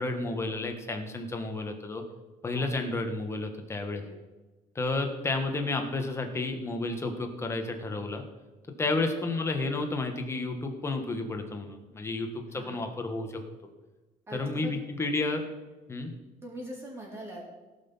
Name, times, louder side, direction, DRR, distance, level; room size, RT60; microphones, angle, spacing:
voice 1, 0.0-2.0 2.4-4.0 4.7-8.2 8.8-13.4 14.3-15.4 15.9-16.1, left 2 dB, 15° left, 4 dB, 1.5 m, -31 dB
voice 2, 8.8-9.3 12.5-12.8 14.3-14.7 16.4-17.4, equal, 15° right, -3 dB, 4.3 m, -43 dB
17.5 x 6.0 x 5.6 m, 1.2 s
cardioid pair, 140°, 16 cm